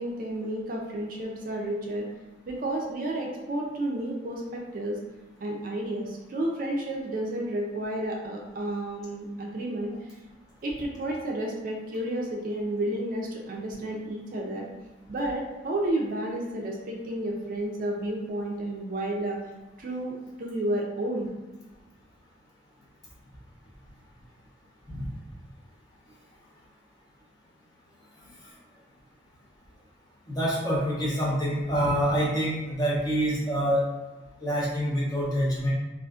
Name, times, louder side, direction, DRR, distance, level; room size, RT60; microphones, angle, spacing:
voice 1, 0.0-2.1 2.5-5.0 5.4-9.9 10.6-14.7 15.1-19.4 19.8-21.3, right 1 dB, 45° right, -1 dB, 0.4 m, -31 dB
voice 2, 30.3-33.8 34.4-35.7, equal, 20° left, -7 dB, 0.6 m, -26 dB
2.4 x 2.4 x 2.3 m, 1.1 s
head